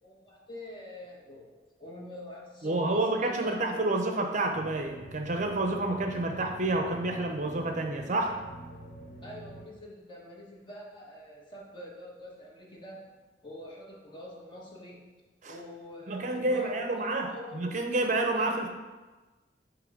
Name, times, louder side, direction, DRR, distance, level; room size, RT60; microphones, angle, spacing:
voice 1, 0.0-1.5 1.8-3.8 9.2-13.2 13.4-15.0 15.5-17.5 18.3-18.5, left 1 dB, 30° left, -3 dB, 1.4 m, -45 dB
voice 2, 2.6-8.4 15.4-15.5 16.1-18.7, right 2 dB, 45° right, 3 dB, 0.6 m, -29 dB
sound 1, 4.5-9.7, right 1 dB, 50° left, 0.8 m, -46 dB
9.0 x 3.0 x 5.0 m, 1.3 s
head